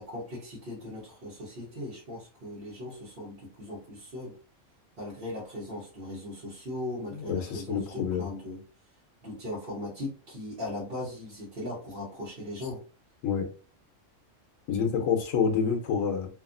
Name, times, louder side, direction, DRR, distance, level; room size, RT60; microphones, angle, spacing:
voice 1, 0.0-4.4 5.0-8.6 9.2-12.8, left 1 dB, 50° right, -7 dB, 1.1 m, -38 dB
voice 2, 7.3-8.3 13.2-13.5 14.7-16.3, left 6 dB, 85° left, 3 dB, 1.1 m, -27 dB
2.8 x 2.4 x 2.4 m, 0.37 s
omnidirectional pair, 1.4 m